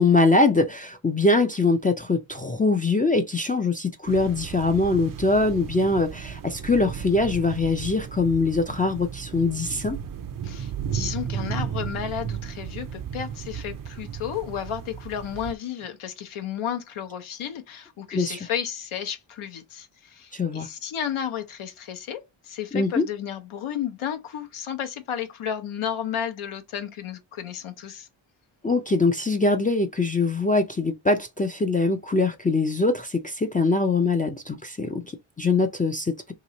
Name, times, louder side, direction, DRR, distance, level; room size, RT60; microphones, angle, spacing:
voice 1, 0.0-10.0 18.1-18.4 20.3-20.7 22.7-23.1 28.6-36.3, left 3 dB, 20° left, 0.3 m, -23 dB
sound 1, 4.1-15.5, right 8 dB, 45° right, 0.5 m, -34 dB
voice 2, 10.4-28.1, left 9 dB, 80° left, 0.8 m, -33 dB
3.0 x 2.8 x 4.0 m
wide cardioid pair, 100°, 49 cm